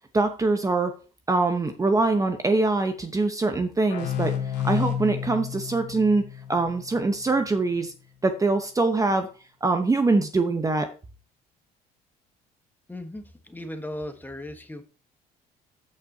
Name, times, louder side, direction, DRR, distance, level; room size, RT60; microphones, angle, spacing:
voice 1, 0.1-0.9 1.3-4.3 4.6-6.2 6.5-7.9 8.2-9.3 9.6-10.9, right 3 dB, 20° right, 6 dB, 1.0 m, -23 dB
sound 1, 3.9-7.4, left 9 dB, 80° left, 2.1 m, -31 dB
voice 2, 12.9-14.8, left 1 dB, 10° left, 7 dB, 1.3 m, -37 dB
15.5 x 5.4 x 2.8 m, 0.34 s
cardioid pair, 110°, 17 cm